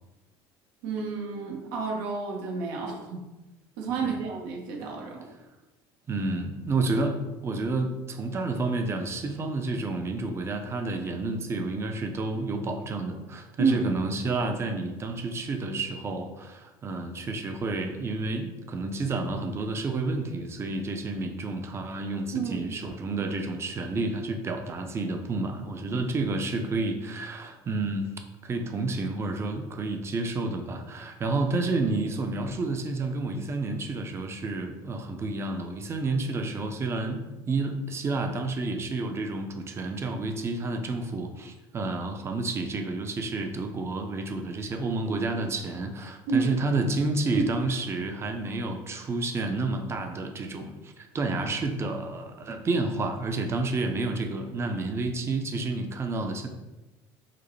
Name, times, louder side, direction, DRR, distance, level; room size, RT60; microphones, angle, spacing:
voice 1, 0.8-3.2 3.8-5.2 13.6-13.8 22.3-22.7 46.3-46.5, right 5 dB, 90° right, 0 dB, 0.8 m, -29 dB
voice 2, 6.1-28.1 28.4-56.5, right 3 dB, 25° right, 5 dB, 0.5 m, -30 dB
4.9 x 2.1 x 3.1 m, 1.1 s
cardioid pair, 120°, 10 cm